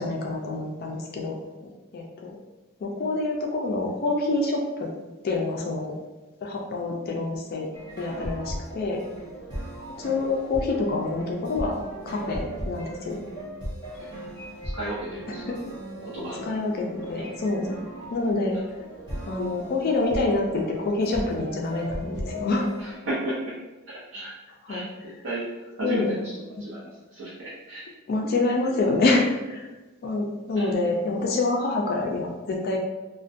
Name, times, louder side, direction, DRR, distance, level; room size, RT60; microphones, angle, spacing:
voice 1, 0.0-1.4 1.9-2.3 2.8-4.9 5.2-5.9 6.4-7.7 8.0-9.0 10.0-11.8 12.1-13.2 15.5-15.6 16.3-17.8 18.1-18.6 19.3-22.7 24.7-24.8 25.8-26.2 28.1-29.7 30.0-32.8, left 2 dB, 45° left, 0 dB, 0.3 m, -26 dB
sound 1, 7.7-22.9, right 1 dB, 20° right, 0.9 m, -37 dB
voice 2, 14.7-15.4 16.0-16.4 22.8-23.6 23.9-24.3 24.7-24.8 25.2-26.3 26.6-27.9 30.6-30.7, right 1 dB, 60° right, -7 dB, 0.5 m, -33 dB
2.4 x 2.1 x 2.5 m, 1.2 s
head